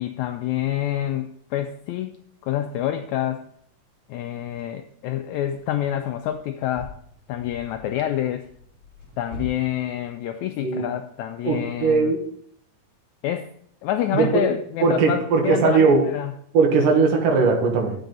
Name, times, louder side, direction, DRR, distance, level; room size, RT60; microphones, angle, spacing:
voice 1, 0.0-2.2 2.4-3.4 4.1-7.0 7.3-8.5 9.2-12.1 13.2-13.5 13.8-16.3, left 11 dB, 85° left, 7 dB, 1.7 m, -27 dB
sound 1, 5.5-9.5, left 3 dB, 20° right, 3.8 m, -43 dB
voice 2, 11.4-12.2 14.1-14.4 14.8-16.0 16.5-17.9, right 4 dB, 80° right, 1 dB, 3.1 m, -19 dB
10.5 x 7.5 x 4.0 m, 0.65 s
omnidirectional pair, 3.8 m